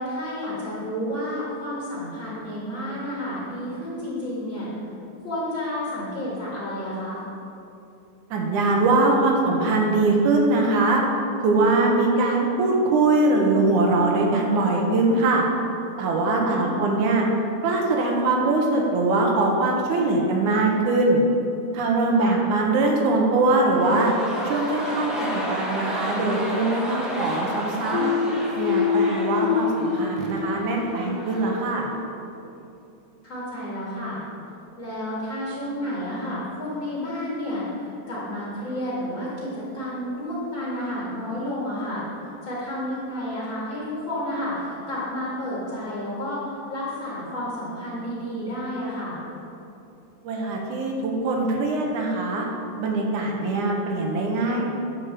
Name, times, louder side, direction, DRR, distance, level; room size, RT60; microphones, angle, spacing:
voice 1, 0.0-4.7 5.2-7.2 16.3-16.9 22.2-22.4 33.2-34.2 34.8-42.0 42.4-46.4 46.7-49.2, left 1 dB, 40° left, -7 dB, 2.6 m, -31 dB
voice 2, 8.3-11.0 11.4-15.4 16.0-17.2 17.6-21.2 21.7-24.1 24.4-25.1 25.5-28.1 28.6-31.9 50.2-52.5 52.8-54.6, right 2 dB, 85° right, 0 dB, 2.7 m, -22 dB
sound 1, 23.6-31.7 31.9-32.0, equal, ahead, 0.5 m, -32 dB
sound 2, 27.9-31.6, left 6 dB, 75° left, 1.6 m, -25 dB
10.5 x 5.1 x 7.3 m, 2.8 s
omnidirectional pair, 3.4 m